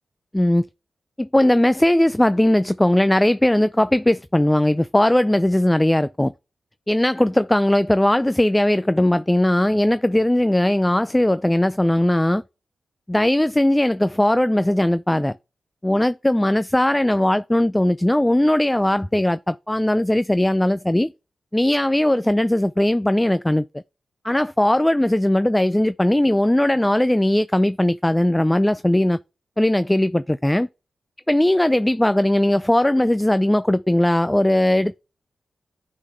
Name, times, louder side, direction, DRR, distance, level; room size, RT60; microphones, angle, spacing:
voice 1, 0.3-0.7 1.2-6.3 6.9-12.4 13.1-15.3 15.8-21.1 21.5-23.7 24.2-29.2 29.6-30.7 31.3-35.0, left 1 dB, 15° left, 0.3 m, -19 dB
9.9 x 3.8 x 3.1 m
cardioid pair, 45°, 0 cm